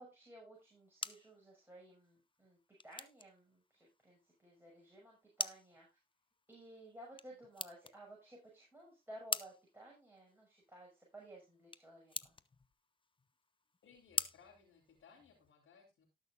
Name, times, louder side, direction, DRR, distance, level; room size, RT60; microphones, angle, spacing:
voice 1, 0.0-2.6 2.8-5.9 6.5-12.3, right 1 dB, 10° right, -4 dB, 6.5 m, -56 dB
sound 1, 0.5-15.5, left 3 dB, 25° left, 0.9 m, -47 dB
voice 2, 13.8-16.0, left 6 dB, 75° left, -4 dB, 4.3 m, -63 dB
18.5 x 6.4 x 2.5 m, 0.24 s
supercardioid pair, 50°, 21 cm